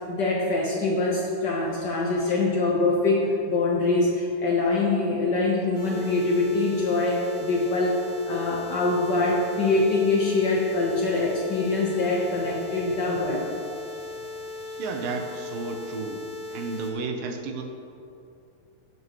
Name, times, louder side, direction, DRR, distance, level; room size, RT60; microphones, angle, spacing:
voice 1, 0.0-13.5, left 3 dB, 75° left, -4 dB, 0.9 m, -24 dB
sound 1, 5.7-16.9, left 3 dB, 35° right, 2.9 m, -38 dB
voice 2, 14.8-16.2 16.5-17.6, right 4 dB, 90° right, 4 dB, 2.7 m, -32 dB
16.5 x 9.4 x 3.1 m, 2.7 s
omnidirectional pair, 3.9 m